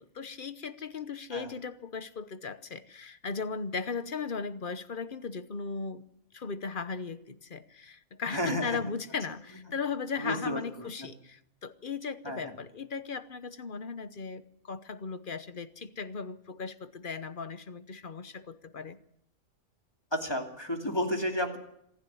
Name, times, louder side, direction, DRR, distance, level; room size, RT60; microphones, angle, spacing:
voice 1, 0.0-6.0 6.3-19.0, left 5 dB, 45° left, 13 dB, 1.0 m, -37 dB
voice 2, 8.3-8.8 10.2-11.1 12.2-12.6 20.1-21.6, equal, 20° left, 3 dB, 2.6 m, -32 dB
26.5 x 10.5 x 10.0 m, 0.76 s
omnidirectional pair, 1.4 m